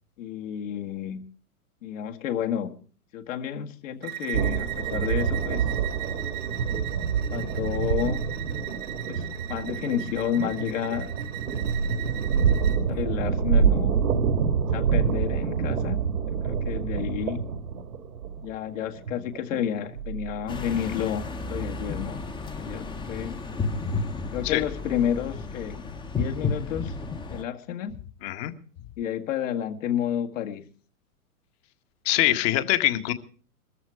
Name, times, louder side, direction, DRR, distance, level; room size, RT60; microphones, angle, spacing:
voice 1, 0.2-1.2 1.8-2.8 3.1-5.6 7.3-8.2 9.1-9.2 9.5-11.1 12.9-14.1 14.7-16.0 16.3-17.4 18.4-22.2 22.6-23.4 24.3-25.8 26.2-27.0 27.3-28.0 29.0-30.6, left 9 dB, 55° left, 4 dB, 2.0 m, -30 dB
Bowed string instrument, 4.0-12.8, right 13 dB, 20° right, 0.8 m, -38 dB
sound 1, 4.3-20.5, right 6 dB, 75° right, 1.9 m, -27 dB
sound 2, 20.5-27.4, left 4 dB, 10° left, 1.0 m, -32 dB
voice 2, 32.0-33.1, left 15 dB, 40° left, 9 dB, 1.7 m, -23 dB
21.5 x 14.0 x 4.9 m, 0.42 s
hypercardioid pair, 115°, 45 cm